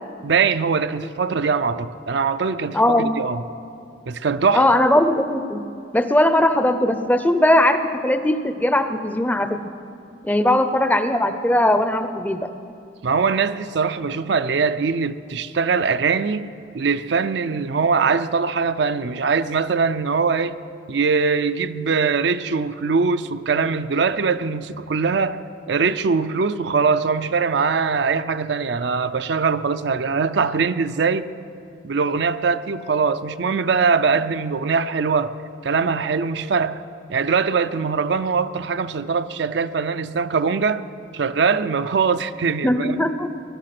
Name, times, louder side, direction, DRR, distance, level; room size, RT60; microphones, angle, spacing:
voice 1, 0.2-3.4 4.1-4.7 13.0-16.5 16.7-20.5 20.9-31.3 31.8-36.8 37.1-40.8 41.1-43.1, right 5 dB, 60° right, 0.5 m, -22 dB
voice 2, 2.7-3.1 4.5-5.6 5.9-9.6 10.2-12.5 42.6-43.3, left 1 dB, 10° left, 0.5 m, -19 dB
21.5 x 11.5 x 5.9 m
head